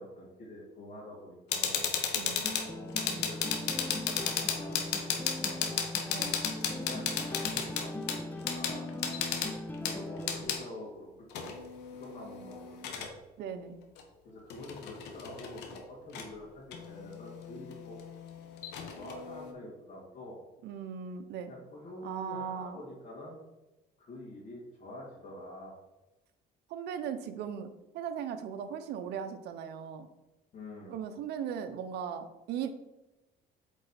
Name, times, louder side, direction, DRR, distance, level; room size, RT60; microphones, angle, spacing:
voice 1, 0.0-1.9 2.6-5.8 6.5-8.9 9.8-13.2 14.2-18.0 19.0-20.4 21.5-23.4 24.0-25.7 30.5-31.0, left 1 dB, 55° left, -6 dB, 2.2 m, -47 dB
sound 1, 1.5-10.6 11.3-13.1 14.0-14.1 14.5-15.8 16.1-16.3 16.7-19.5, left 7 dB, 85° left, 1.2 m, -35 dB
voice 2, 2.1-2.4 6.1-6.3 13.4-13.8 20.6-21.5 22.0-22.8 26.7-30.1 30.9-32.7, right 8 dB, 75° right, 8 dB, 0.8 m, -38 dB
sound 2, 2.4-10.4, left 1 dB, 10° left, 0.8 m, -40 dB
8.3 x 4.0 x 4.3 m, 1.0 s
cardioid pair, 110°, 17 cm